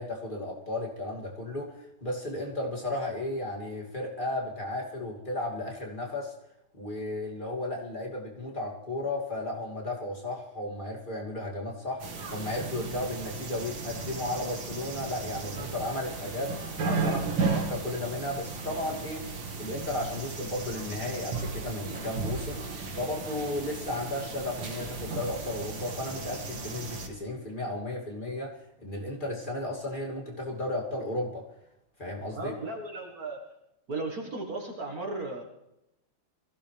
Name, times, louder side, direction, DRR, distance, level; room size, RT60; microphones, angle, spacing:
voice 1, 0.0-6.3 6.7-12.0 12.3-19.2 19.6-22.7 22.9-28.5 28.8-31.4 32.0-32.5, left 1 dB, 25° left, -1 dB, 2.9 m, -34 dB
sound 1, 12.0-27.1, right 4 dB, 70° right, 2.6 m, -35 dB
voice 2, 32.3-33.4 33.9-35.4, right 2 dB, 50° right, 1 dB, 2.2 m, -35 dB
24.0 x 15.5 x 3.5 m, 0.87 s
omnidirectional pair, 2.2 m